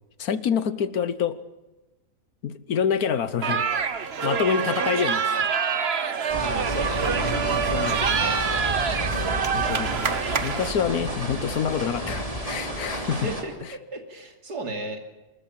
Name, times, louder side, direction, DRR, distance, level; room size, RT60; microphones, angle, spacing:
voice 1, 0.2-1.4 2.4-3.6 4.2-5.5 7.0-8.2 9.5-13.3, left 7 dB, 65° left, 14 dB, 1.5 m, -27 dB
sound 1, 3.4-10.7, right 6 dB, 45° right, 1.2 m, -26 dB
sound 2, 6.3-13.4, equal, 20° right, 3.1 m, -31 dB
voice 2, 6.4-7.0 13.2-13.5 13.9-15.0, right 2 dB, 80° right, 4 dB, 3.3 m, -33 dB
26.0 x 13.5 x 8.9 m, 1.1 s
omnidirectional pair, 1.7 m